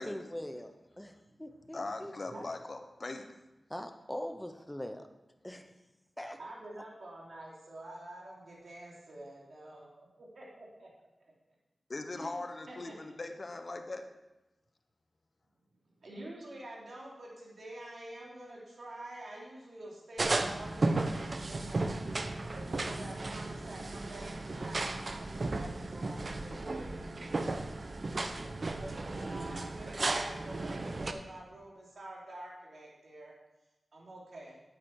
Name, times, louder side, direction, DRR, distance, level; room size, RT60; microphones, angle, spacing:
voice 1, 0.0-1.1 1.4-2.1 3.7-5.1 5.4-5.7 6.2-6.4, left 1 dB, 10° left, 6 dB, 0.8 m, -41 dB
voice 2, 1.7-3.3 11.9-14.1, left 2 dB, 50° left, 6 dB, 1.1 m, -40 dB
voice 3, 6.4-10.9 11.2-11.3 12.1-12.4 12.7-13.2 15.9-22.0 22.2-27.0 28.8-33.3 33.9-34.6, right 1 dB, 75° right, -4 dB, 3.1 m, -48 dB
sound 1, 20.2-31.1, right 2 dB, 55° right, 0.8 m, -35 dB
9.0 x 8.8 x 4.8 m, 1.0 s
cardioid pair, 55°, 0 cm